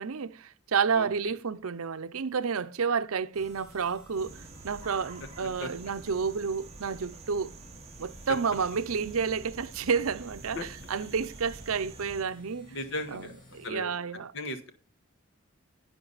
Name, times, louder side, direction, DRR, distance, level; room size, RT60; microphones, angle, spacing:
voice 1, 0.0-7.5 8.0-12.8 13.1-14.3, right 6 dB, 85° right, 0.6 m, -30 dB
sound 1, 3.3-13.7, left 1 dB, 40° left, 5.5 m, -55 dB
sound 2, 4.2-12.2, right 3 dB, 30° right, 1.0 m, -47 dB
voice 2, 12.7-13.3 13.6-13.9 14.3-14.7, left 1 dB, 60° left, 1.5 m, -36 dB
11.0 x 9.4 x 4.0 m
head